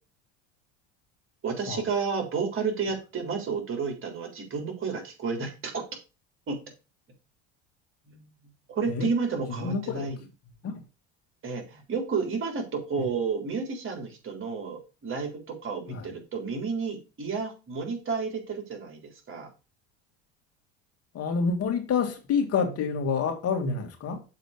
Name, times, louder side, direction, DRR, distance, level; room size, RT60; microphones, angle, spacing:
voice 1, 1.4-5.8 6.5-6.6 8.1-8.2 8.7-10.2 11.4-19.0 19.3-19.5, right 5 dB, 40° right, 3.7 m, -31 dB
voice 2, 9.5-10.1 10.6-10.8 13.0-13.1 15.9-16.1 21.1-24.2, left 5 dB, 45° left, 2.3 m, -28 dB
7.2 x 4.0 x 6.6 m
supercardioid pair, 85°, 33 cm